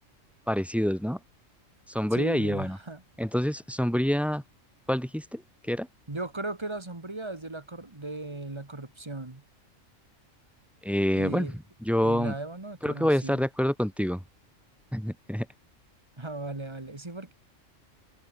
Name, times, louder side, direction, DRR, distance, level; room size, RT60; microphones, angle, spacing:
voice 1, 0.5-1.2 1.9-2.8 3.2-4.4 4.9-5.9 10.8-11.5 11.8-12.3 12.8-14.2 14.9-15.5, equal, ahead, 1.6 m, -27 dB
voice 2, 2.1-3.0 6.1-9.4 11.1-11.5 12.0-13.4 16.2-17.3, right 2 dB, 20° right, 1.8 m, -37 dB
omnidirectional pair, 1.3 m